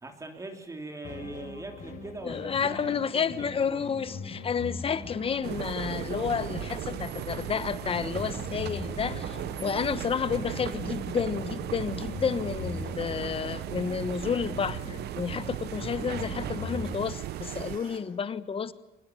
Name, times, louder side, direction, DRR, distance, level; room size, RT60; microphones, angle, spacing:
voice 1, 0.0-3.8, right 2 dB, 20° right, 3.2 m, -41 dB
sound 1, 1.0-17.0, left 4 dB, 50° left, 5.1 m, -42 dB
voice 2, 2.2-18.7, left 6 dB, 35° left, 1.3 m, -31 dB
sound 2, 5.2-18.0, right 6 dB, 60° right, 4.6 m, -52 dB
sound 3, 5.4-17.8, right 13 dB, 75° right, 0.9 m, -36 dB
25.0 x 21.0 x 9.3 m
cardioid pair, 140°, 17 cm